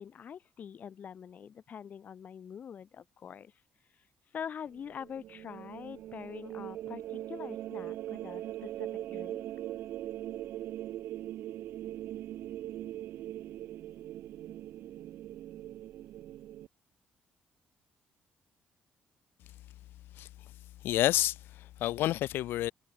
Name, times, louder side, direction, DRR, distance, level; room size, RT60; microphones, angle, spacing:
voice 1, 0.0-3.5 4.3-9.4, left 8 dB, 50° left, 0.8 m, -44 dB
sound 1, 4.7-16.7, right 13 dB, 80° right, 1.3 m, -41 dB
voice 2, 20.8-22.7, left 14 dB, 85° left, 0.9 m, -29 dB
cardioid pair, 105°, 4 cm